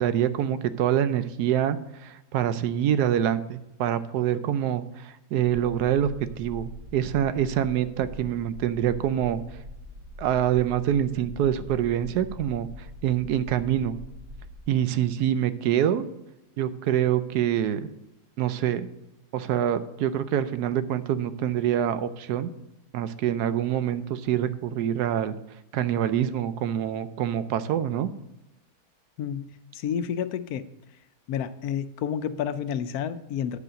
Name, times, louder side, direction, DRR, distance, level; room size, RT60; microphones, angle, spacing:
voice 1, 0.0-6.1 6.4-9.4 10.2-12.7 13.0-14.0 14.7-16.0 16.6-17.9 18.4-18.9 19.3-22.5 22.9-25.4 25.7-28.1, right 10 dB, 85° right, 12 dB, 1.2 m, -25 dB
sound 1, 5.8-14.6, left 1 dB, 60° right, 1.6 m, -43 dB
voice 2, 29.2-30.7 31.3-33.6, left 8 dB, 75° left, 12 dB, 1.1 m, -30 dB
9.5 x 5.0 x 6.4 m, 0.93 s
omnidirectional pair, 1.7 m